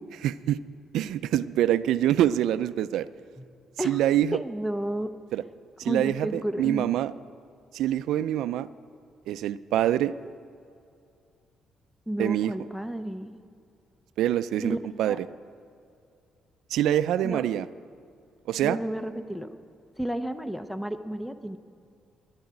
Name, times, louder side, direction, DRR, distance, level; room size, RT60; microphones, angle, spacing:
voice 1, 0.1-0.6 0.9-3.1 3.8-4.4 5.3-5.4 5.8-7.1 7.7-8.7 9.3-10.1 12.2-12.5 14.2-15.3 16.7-17.7 18.5-18.8, right 12 dB, 85° right, 14 dB, 0.3 m, -25 dB
voice 2, 4.3-5.1 5.8-6.9 12.1-13.3 14.6-14.8 15.1-15.2 17.2-17.6 18.6-19.6 20.0-21.6, right 1 dB, 5° left, 10 dB, 0.6 m, -32 dB
11.0 x 8.7 x 9.4 m, 2.6 s
cardioid pair, 120°, 0 cm